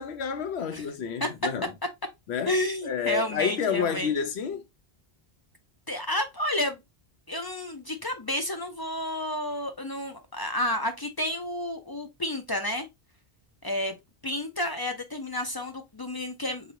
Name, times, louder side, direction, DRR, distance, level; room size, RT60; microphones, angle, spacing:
voice 1, 0.0-1.7 2.3-2.5 2.8-4.6, left 7 dB, 80° left, 1.0 m, -29 dB
voice 2, 2.5-4.1 5.9-6.8 7.3-12.9 13.6-14.0 14.2-16.7, left 1 dB, 40° left, 0.3 m, -30 dB
3.9 x 3.2 x 2.7 m
omnidirectional pair, 1.1 m